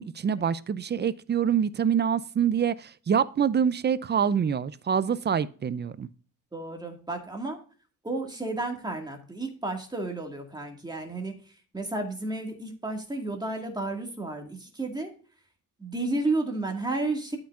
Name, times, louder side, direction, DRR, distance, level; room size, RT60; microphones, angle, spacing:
voice 1, 0.0-6.1, right 7 dB, 30° right, 0.5 m, -26 dB
voice 2, 6.5-7.6 8.0-11.4 11.7-15.1 15.8-17.4, right 2 dB, 10° right, 2.0 m, -32 dB
12.5 x 5.9 x 2.5 m
cardioid pair, 120°, 34 cm